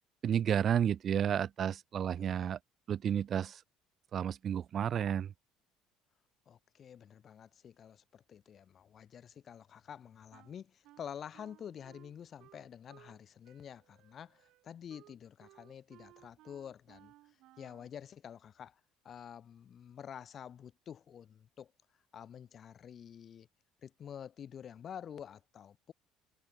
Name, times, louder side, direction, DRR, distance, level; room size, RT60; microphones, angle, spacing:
voice 1, 0.2-2.6 2.9-3.6 4.1-5.3, right 9 dB, 50° right, 0.4 m, -31 dB
voice 2, 2.2-2.6 6.5-17.1 17.6-18.8 19.0-21.7 22.1-23.5 23.8-25.9, left 8 dB, 45° left, 1.0 m, -49 dB
Wind instrument woodwind instrument, 10.3-13.2 13.4-18.0, right 16 dB, 70° right, 2.3 m, -62 dB
supercardioid pair, 90°, 0 cm